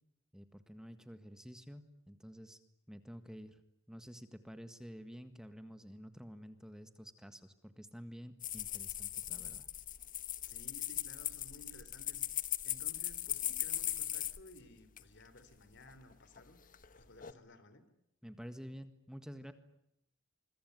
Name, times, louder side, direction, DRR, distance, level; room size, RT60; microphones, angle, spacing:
voice 1, 0.3-2.6 2.9-3.6 3.9-9.7 18.2-19.5, equal, 5° right, 9 dB, 1.7 m, -50 dB
sound 1, 8.4-14.6 15.0-15.1 15.9-16.4 16.7-17.3, left 12 dB, 45° left, 1.3 m, -39 dB
voice 2, 10.5-17.9, left 1 dB, 60° left, 13 dB, 3.4 m, -57 dB
26.0 x 23.0 x 9.4 m, 0.76 s
head